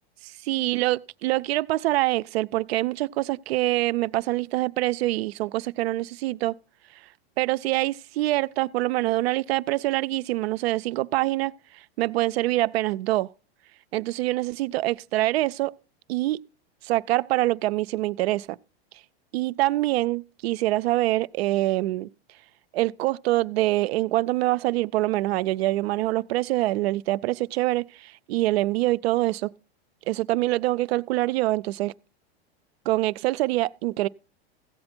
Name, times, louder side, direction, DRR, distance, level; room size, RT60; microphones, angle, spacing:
voice 1, 0.5-6.6 7.4-11.5 12.0-13.3 13.9-15.7 16.1-16.4 16.8-18.6 19.3-22.1 22.7-29.5 30.1-31.9 32.9-34.1, right 17 dB, 80° right, 0.5 m, -25 dB
15.0 x 7.7 x 4.4 m
supercardioid pair, 135°, 31 cm